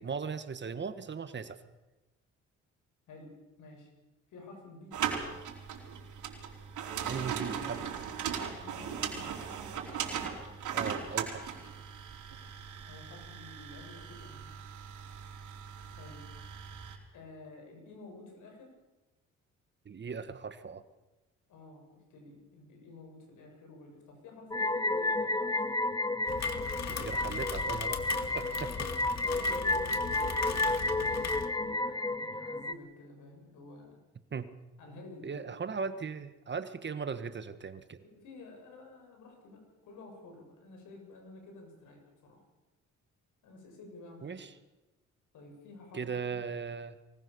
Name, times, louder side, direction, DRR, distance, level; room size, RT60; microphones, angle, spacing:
voice 1, 0.0-1.6 7.0-7.9 10.7-11.5 19.8-20.8 26.9-28.0 28.3-28.9 34.2-34.5 35.2-38.0 44.2-44.6 45.9-47.0, right 5 dB, 35° right, 11 dB, 1.6 m, -38 dB
voice 2, 3.1-3.9 4.3-5.0 8.5-9.5 12.8-14.5 16.0-16.3 17.1-18.7 21.5-25.6 29.2-34.0 34.8-35.7 38.0-42.4 43.4-44.4 45.3-46.2, left 2 dB, 80° left, 3 dB, 7.5 m, -51 dB
sound 1, 4.9-17.0, right 8 dB, 80° right, 4.4 m, -38 dB
sound 2, 24.5-32.7, left 2 dB, 15° left, 1.0 m, -31 dB
Rain, 26.3-31.5, left 7 dB, 60° left, 2.2 m, -39 dB
24.0 x 20.0 x 7.0 m, 1.1 s
cardioid pair, 90°, 30 cm